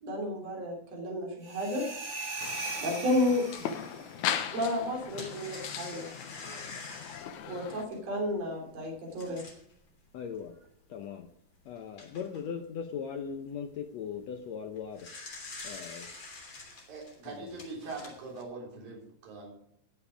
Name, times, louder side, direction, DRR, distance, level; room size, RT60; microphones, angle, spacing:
voice 1, 0.0-1.8 2.8-3.4 4.5-6.1 7.5-9.4, left 1 dB, 45° right, 0 dB, 4.2 m, -31 dB
sound 1, 1.4-4.2, right 3 dB, 25° right, 1.3 m, -39 dB
sound 2, 2.4-7.9, left 9 dB, 70° left, 2.1 m, -38 dB
sound 3, 3.2-3.3 4.7-9.7 10.4-10.5 10.8-10.9 11.6-12.4 14.6-18.4, left 3 dB, 35° left, 3.5 m, -46 dB
voice 2, 10.1-10.5 10.9-11.3 11.7-15.0 15.6-16.1 17.3-17.4, left 7 dB, 85° left, 6 dB, 1.5 m, -39 dB
voice 3, 16.9-19.5, right 3 dB, 65° right, -2 dB, 5.4 m, -42 dB
18.5 x 7.3 x 5.0 m, 0.73 s
omnidirectional pair, 4.3 m